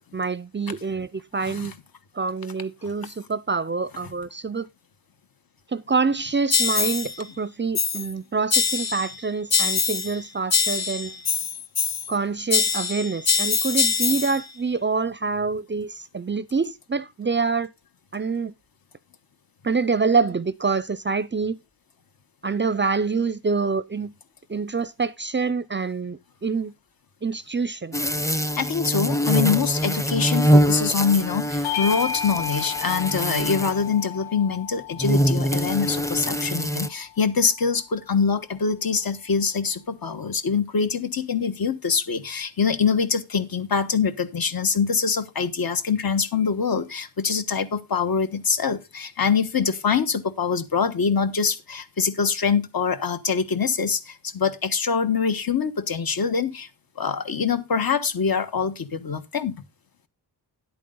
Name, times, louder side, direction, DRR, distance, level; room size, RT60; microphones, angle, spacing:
voice 1, 0.1-1.7 2.1-4.7 5.7-11.1 12.1-17.7 18.1-18.5 19.6-21.6 22.4-24.1 24.5-26.7 27.2-28.0, right 4 dB, 30° right, 0.5 m, -26 dB
sound 1, 6.5-7.1 7.7-8.1 8.5-9.1 9.5-10.2 10.5-12.2 12.5-14.4, left 5 dB, 40° left, 0.8 m, -23 dB
sound 2, 27.9-33.9 35.0-36.9, equal, 10° left, 0.7 m, -24 dB
voice 2, 28.6-56.7 57.0-59.6, left 6 dB, 60° left, 1.4 m, -24 dB
Bell / Doorbell, 31.6-36.5, left 8 dB, 80° left, 1.8 m, -33 dB
10.5 x 8.6 x 3.8 m
wide cardioid pair, 140°, 40 cm